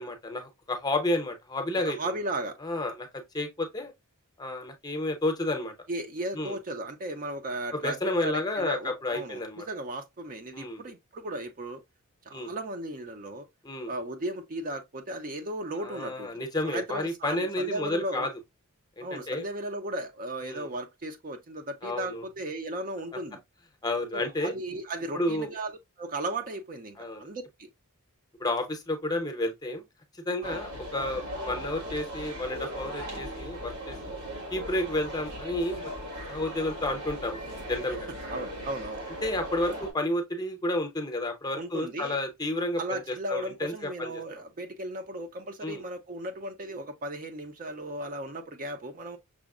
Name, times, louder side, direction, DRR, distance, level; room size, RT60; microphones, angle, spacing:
voice 1, 0.0-2.1 2.6-3.9 4.4-5.7 6.3-6.6 7.7-9.7 10.5-10.8 12.3-12.5 13.6-13.9 15.8-18.3 19.0-19.4 20.4-20.7 21.8-22.2 23.8-24.5 25.1-25.5 27.0-27.3 28.4-29.8 30.1-34.2 34.5-35.9 36.3-37.4 37.7-38.1 39.2-44.2 45.6-45.8, left 1 dB, 20° left, 0.7 m, -31 dB
voice 2, 1.8-2.6 5.9-11.8 12.3-13.5 13.9-18.3 19.0-23.4 24.1-25.7 26.0-27.7 30.4-30.6 38.2-39.1 41.6-42.2 42.8-49.2, right 1 dB, 40° right, 0.5 m, -36 dB
sound 1, 30.4-39.9, equal, 90° right, 1.6 m, -38 dB
6.0 x 2.0 x 2.3 m
head